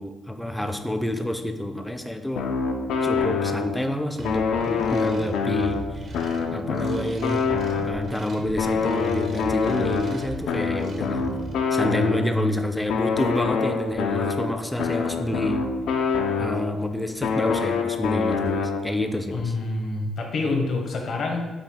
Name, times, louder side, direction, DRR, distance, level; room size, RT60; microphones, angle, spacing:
voice 1, 0.0-2.5 3.0-6.1 6.5-7.4 7.8-11.2 11.7-15.6 16.4-19.5, left 1 dB, 5° left, 6 dB, 0.4 m, -28 dB
sound 1, 2.4-3.9 4.2-8.2 8.6-12.5 12.9-16.8 17.2-19.1, left 5 dB, 80° left, 0.3 m, -26 dB
sound 2, 4.2-11.5, right 2 dB, 55° right, 0.5 m, -38 dB
voice 2, 11.8-12.5 19.3-21.5, left 3 dB, 60° left, 2 dB, 0.7 m, -27 dB
5.0 x 2.3 x 3.5 m, 1.2 s
cardioid pair, 90°, 0 cm